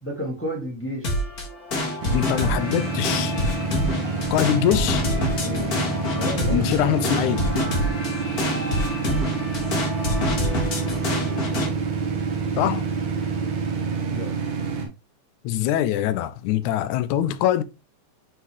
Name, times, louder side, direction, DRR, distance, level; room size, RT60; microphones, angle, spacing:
voice 1, 0.0-1.2 5.4-5.8 6.1-7.2 14.1-14.3, equal, 5° left, 1.2 m, -32 dB
sound 1, 1.0-11.7, left 1 dB, 40° left, 1.6 m, -26 dB
sound 2, 2.0-14.9, right 4 dB, 70° right, 2.5 m, -27 dB
voice 2, 2.1-3.3 4.3-5.0 6.5-7.4 12.6-12.9 15.4-17.6, left 12 dB, 90° left, 2.0 m, -23 dB
8.2 x 3.9 x 3.0 m
omnidirectional pair, 3.4 m